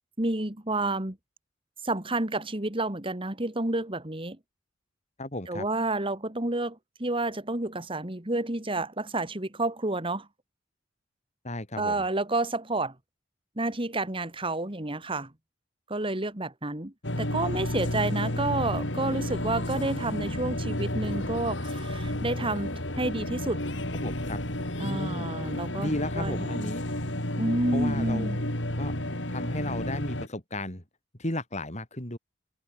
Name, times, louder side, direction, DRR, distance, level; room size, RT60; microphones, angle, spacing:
voice 1, 0.2-1.2 1.8-4.4 5.5-10.3 11.8-12.9 13.6-15.3 15.9-23.6 24.8-25.9 26.2-26.7 27.3-28.4, right 2 dB, 30° right, 2.5 m, -30 dB
voice 2, 5.2-5.7 11.4-12.0 24.0-24.4 24.8-25.3 25.8-26.8 27.7-28.3 28.8-28.9 29.3-30.8 31.2-32.2, left 1 dB, 40° left, 5.9 m, -34 dB
sound 1, 17.0-30.3, left 1 dB, 75° left, 6.4 m, -31 dB
open air
head